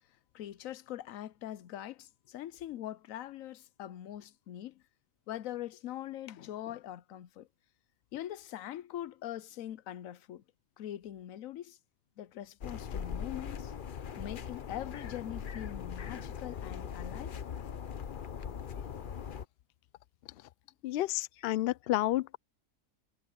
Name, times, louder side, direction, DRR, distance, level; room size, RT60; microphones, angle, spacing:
voice 1, 0.3-4.8 5.3-7.5 8.1-10.4 10.8-11.8 12.2-13.7 14.2-17.4, left 12 dB, 70° left, 1.0 m, -42 dB
sound 1, 12.6-19.4, left 7 dB, 45° left, 0.7 m, -40 dB
voice 2, 20.8-22.4, left 15 dB, 85° left, 0.5 m, -30 dB
omnidirectional pair, 1.6 m